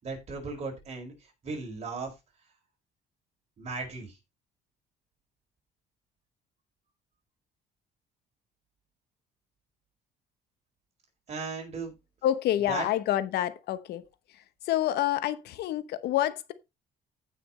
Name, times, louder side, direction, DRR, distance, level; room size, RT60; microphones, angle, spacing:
voice 1, 0.0-1.1 1.4-2.1 3.6-4.2 11.3-11.9 12.7-12.8, right 4 dB, 40° right, 4.8 m, -36 dB
voice 2, 12.2-14.0 14.3-16.5, left 12 dB, 75° left, 1.0 m, -28 dB
15.0 x 5.9 x 3.1 m
cardioid pair, 110°, 17 cm